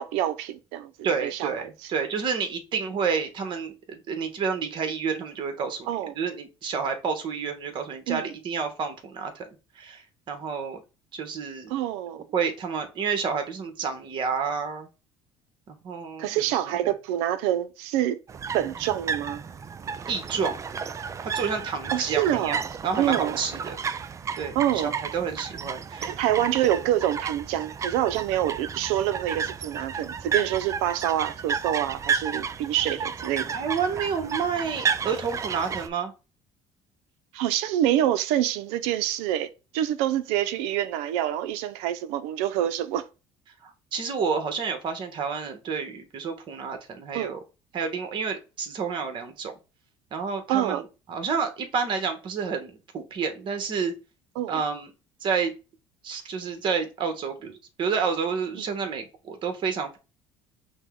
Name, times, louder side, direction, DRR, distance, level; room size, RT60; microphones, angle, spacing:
voice 1, 0.0-0.9 1.2-1.5 5.9-6.1 8.1-8.3 11.7-12.3 16.2-18.2 18.5-19.4 21.9-22.6 23.0-23.4 24.5-24.9 26.0-33.5 37.3-43.1 47.1-47.3 50.5-50.8 54.4-54.6, right 12 dB, 85° right, 0.5 m, -26 dB
voice 2, 1.0-5.9 6.1-9.5 9.7-10.8 11.1-11.7 12.3-14.9 15.7-16.9 20.1-20.6 21.2-23.8 24.4-26.1 33.5-36.1 43.6-47.4 47.7-49.5 50.1-53.9 54.5-54.9 55.2-55.5 56.0-60.0, right 6 dB, 50° right, 1.1 m, -30 dB
sound 1, 18.3-35.9, right 6 dB, 30° right, 0.4 m, -32 dB
5.2 x 2.1 x 3.7 m
supercardioid pair, 95°, 10 cm